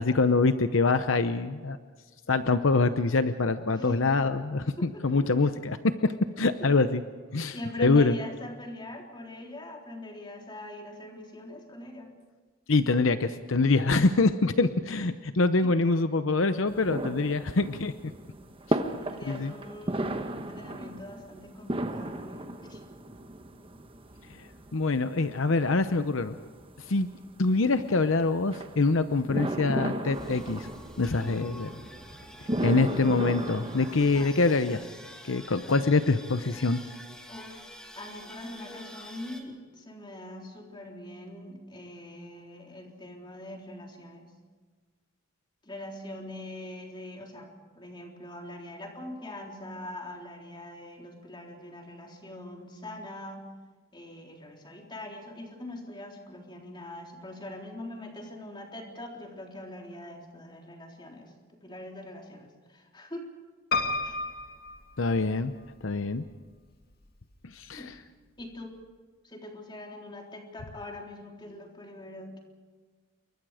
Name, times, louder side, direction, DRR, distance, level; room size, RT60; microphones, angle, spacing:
voice 1, 0.0-1.8 2.3-7.0 7.3-8.2 12.7-17.9 18.7-18.8 19.3-19.5 24.3-24.4 24.7-26.3 26.9-27.1 27.4-30.7 31.0-31.7 32.6-34.8 35.2-36.8 65.0-65.5 65.8-66.2 67.4-67.9, left 3 dB, 70° left, 10 dB, 0.8 m, -25 dB
voice 2, 3.8-4.2 4.8-5.2 6.6-6.7 7.5-12.1 15.6-15.7 19.0-22.8 34.2-34.4 37.3-44.3 45.6-53.4 53.9-61.3 61.6-63.3 64.0-64.2 67.7-67.9 68.4-68.8 69.2-72.4, left 1 dB, 20° left, 1 dB, 3.7 m, -42 dB
sound 1, 16.7-34.3, right 1 dB, 25° right, 1.2 m, -36 dB
sound 2, 30.1-39.4, equal, 5° left, 2.6 m, -48 dB
Piano, 63.7-65.7 66.3-67.0 67.3-67.4 67.6-67.7, left 3 dB, 50° left, 2.3 m, -32 dB
28.5 x 23.5 x 5.0 m, 1.4 s
head